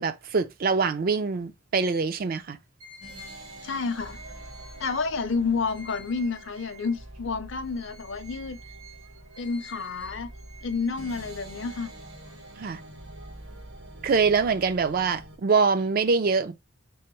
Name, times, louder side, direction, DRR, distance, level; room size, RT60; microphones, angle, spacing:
voice 1, 0.0-2.6 12.6-12.8 14.0-16.5, right 5 dB, 45° right, 0.3 m, -24 dB
sound 1, 2.8-7.2 7.6-12.5, equal, 85° right, 1.9 m, -50 dB
sound 2, 3.0-15.4, right 1 dB, 65° right, 1.2 m, -45 dB
voice 2, 3.6-4.2 4.8-8.6 9.4-10.3 10.6-11.9, left 4 dB, 60° left, 0.5 m, -30 dB
3.5 x 3.3 x 2.9 m
head